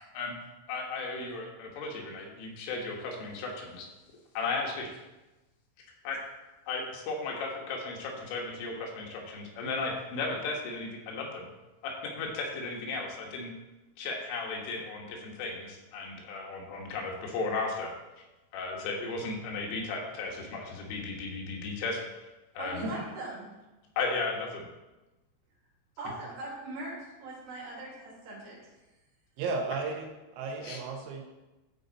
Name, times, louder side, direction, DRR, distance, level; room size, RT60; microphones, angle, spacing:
voice 1, 0.7-3.9 4.4-4.9 6.1-11.5 11.8-13.5 14.0-18.2 18.5-22.0 22.6-22.9 24.0-24.7 30.6-30.8, left 3 dB, 75° left, 0 dB, 3.9 m, -35 dB
voice 2, 22.6-23.5 26.0-28.7, right 2 dB, 55° right, -5 dB, 4.4 m, -40 dB
voice 3, 29.4-30.1 30.3-31.3, right 4 dB, 85° right, 1 dB, 4.1 m, -34 dB
14.0 x 5.5 x 4.1 m, 1.1 s
omnidirectional pair, 5.9 m